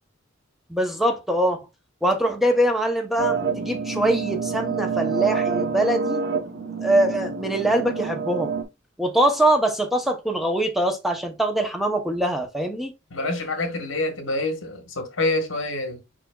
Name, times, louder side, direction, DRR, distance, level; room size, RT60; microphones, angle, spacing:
voice 1, 0.7-1.6 2.0-6.2 6.8-8.5 9.0-12.9, right 1 dB, ahead, 0.6 m, -23 dB
sound 1, 3.2-8.6, right 5 dB, 55° right, 0.8 m, -27 dB
voice 2, 13.1-16.0, left 2 dB, 70° left, 1.2 m, -27 dB
4.8 x 4.8 x 2.3 m
head